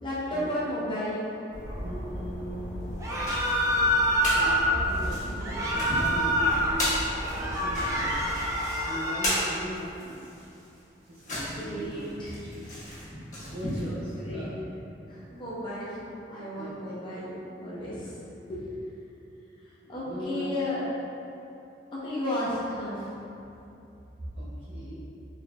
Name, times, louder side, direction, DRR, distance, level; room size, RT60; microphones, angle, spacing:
voice 1, 0.0-1.3 11.3-12.4 12.8-13.0 14.2-14.5 15.1-18.6 19.6-20.8 22.0-23.1, left 1 dB, 25° left, -9 dB, 0.7 m, -34 dB
sound 1, 1.5-8.5, equal, 70° left, 0.8 m, -37 dB
voice 2, 1.8-2.8 4.3-6.9 7.3-8.2 8.9-10.3 11.1-12.1 12.4-12.7 13.5-14.6 16.6-16.9 19.8-20.5 24.3-25.0, equal, 65° right, -8 dB, 0.6 m, -39 dB
sound 2, 2.9-4.4 4.8-14.3, left 1 dB, 45° left, 1.2 m, -35 dB
sound 3, 3.0-4.7 5.4-6.7 7.1-9.4, equal, 15° right, 0.4 m, -26 dB
4.1 x 3.2 x 2.2 m, 2.8 s
head